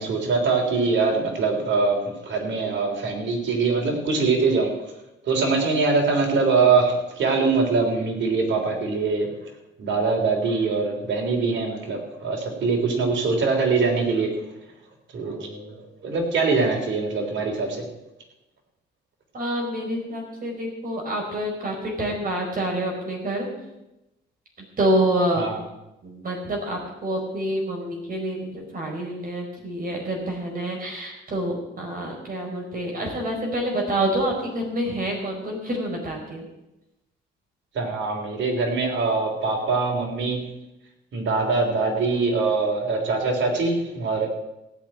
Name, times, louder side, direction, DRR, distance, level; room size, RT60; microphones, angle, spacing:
voice 1, 0.0-4.7 5.2-9.3 9.8-14.4 15.1-17.8 25.4-25.6 37.7-40.5 41.1-44.3, right 4 dB, 65° right, 2 dB, 3.6 m, -23 dB
voice 2, 19.3-23.5 24.8-25.4 26.0-36.4, right 1 dB, 45° right, 0 dB, 4.6 m, -27 dB
16.5 x 5.9 x 8.8 m, 0.95 s
cardioid pair, 90°, 20 cm